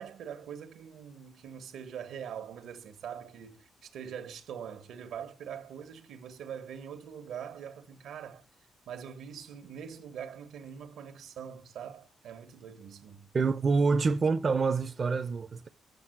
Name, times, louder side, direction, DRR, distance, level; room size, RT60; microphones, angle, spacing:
voice 1, 0.0-8.4 8.8-13.3, right 8 dB, 85° right, 1.5 m, -43 dB
voice 2, 13.3-15.7, right 4 dB, 40° right, 0.7 m, -26 dB
7.8 x 7.0 x 7.9 m
cardioid pair, 100°, 0 cm